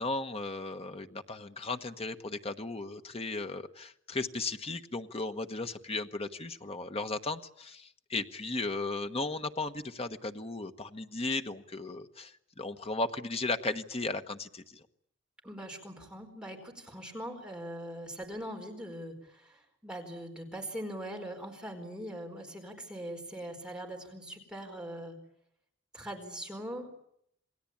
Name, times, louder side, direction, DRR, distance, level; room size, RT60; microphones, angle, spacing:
voice 1, 0.0-14.8, left 3 dB, 30° left, 7 dB, 1.3 m, -36 dB
voice 2, 15.4-25.2 25.9-26.9, equal, 5° right, 1 dB, 4.5 m, -41 dB
28.5 x 19.5 x 8.8 m, 0.72 s
head